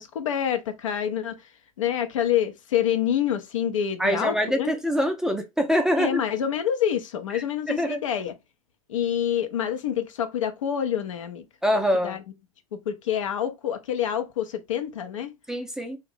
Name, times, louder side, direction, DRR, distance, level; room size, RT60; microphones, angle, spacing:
voice 1, 0.0-1.4 1.8-4.7 6.0-8.3 8.9-11.4 12.0-12.2 12.9-15.3, left 9 dB, 65° left, 0.6 m, -27 dB
voice 2, 4.0-6.2 7.3-8.0 11.6-12.2 15.5-16.0, equal, 5° right, 0.4 m, -24 dB
2.5 x 2.1 x 3.4 m
figure-of-eight pair, 90°, 18 cm